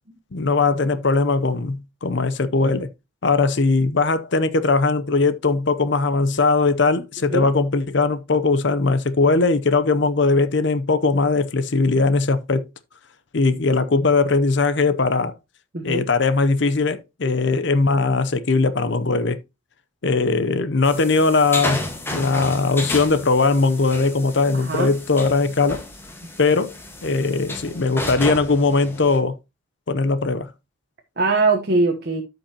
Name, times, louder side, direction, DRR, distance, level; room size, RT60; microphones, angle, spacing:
voice 1, 0.3-2.9 3.2-12.7 13.3-15.4 15.8-19.4 20.0-21.9 22.1-25.8 26.4-26.7 27.0-29.4 29.9-30.5, left 3 dB, 55° left, 0.7 m, -20 dB
voice 2, 15.7-16.1 17.2-17.3 24.5-24.9 31.2-32.2, right 3 dB, 50° right, 1.1 m, -21 dB
sound 1, 20.8-29.2, left 2 dB, 10° left, 1.4 m, -32 dB
13.0 x 5.3 x 2.9 m
head